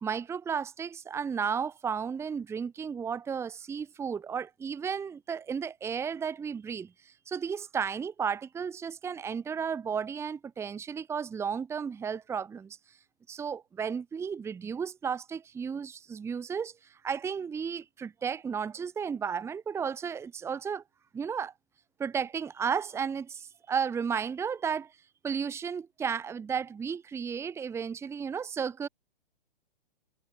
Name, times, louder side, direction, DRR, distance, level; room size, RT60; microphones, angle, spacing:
voice 1, 0.0-6.9 7.3-12.8 13.3-16.7 17.0-20.8 21.1-21.5 22.0-24.9 25.2-28.9, right 6 dB, 10° right, 1.0 m, -33 dB
hypercardioid pair, 135°, 30 cm